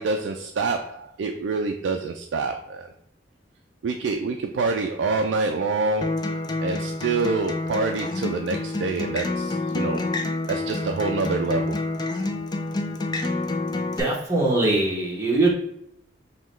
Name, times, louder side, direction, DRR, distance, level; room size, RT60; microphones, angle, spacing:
voice 1, 0.0-2.9 3.8-10.0 10.5-11.8, right 4 dB, 75° right, 4 dB, 0.3 m, -26 dB
Acoustic guitar, 6.0-14.0, left 2 dB, 20° left, 0.3 m, -28 dB
voice 2, 14.0-15.5, right 2 dB, 15° right, -4 dB, 1.1 m, -21 dB
5.5 x 2.2 x 3.1 m, 0.73 s
head